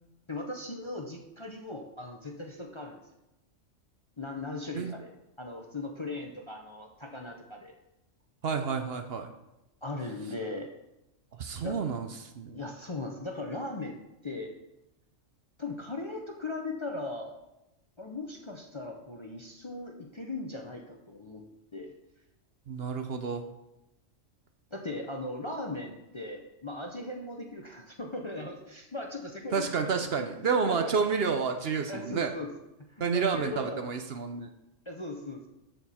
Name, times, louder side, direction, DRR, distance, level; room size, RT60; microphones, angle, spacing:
voice 1, 0.3-3.0 4.2-5.1 5.4-7.7 9.8-10.7 11.6-11.8 12.5-14.0 14.2-14.5 15.6-17.3 18.0-21.4 21.7-21.9 24.7-29.9 30.4-30.9 31.9-32.5 33.0-33.8 34.9-35.4, left 2 dB, 30° left, 2 dB, 0.6 m, -38 dB
voice 2, 8.4-9.3 11.4-12.6 22.7-23.5 29.5-32.3 33.0-34.5, right 5 dB, 60° right, 6 dB, 0.8 m, -30 dB
13.5 x 4.5 x 4.2 m, 0.92 s
omnidirectional pair, 1.3 m